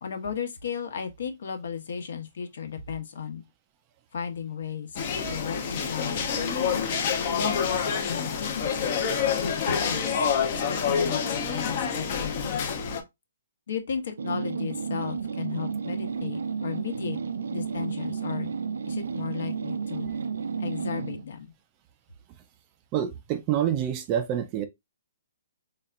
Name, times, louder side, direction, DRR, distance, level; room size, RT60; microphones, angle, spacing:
voice 1, 0.0-3.4 4.1-5.0 5.3-6.2 6.9-7.5 8.1-8.9 9.4-10.2 10.5-13.0 13.7-17.2 17.5-18.5 18.8-20.1 20.6-21.5, left 7 dB, 60° left, 1.0 m, -35 dB
sound 1, 5.0-13.0, left 6 dB, 35° left, 0.7 m, -27 dB
sound 2, 14.2-21.2, right 6 dB, 80° right, 0.5 m, -32 dB
voice 2, 22.9-24.7, right 10 dB, 20° right, 0.4 m, -27 dB
4.1 x 3.4 x 2.4 m
hypercardioid pair, 170°, 0 cm